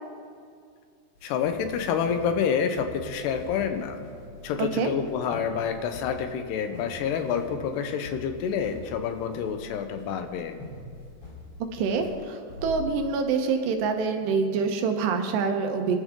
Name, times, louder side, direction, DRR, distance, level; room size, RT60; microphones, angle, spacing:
voice 1, 1.2-4.0 4.4-10.6, left 7 dB, 80° left, 7 dB, 3.0 m, -28 dB
sound 1, 1.2-13.4, left 3 dB, 30° left, 4.3 m, -43 dB
voice 2, 4.6-4.9 11.7-16.0, right 5 dB, 80° right, 5 dB, 3.2 m, -26 dB
26.0 x 11.5 x 3.8 m, 2.2 s
omnidirectional pair, 4.9 m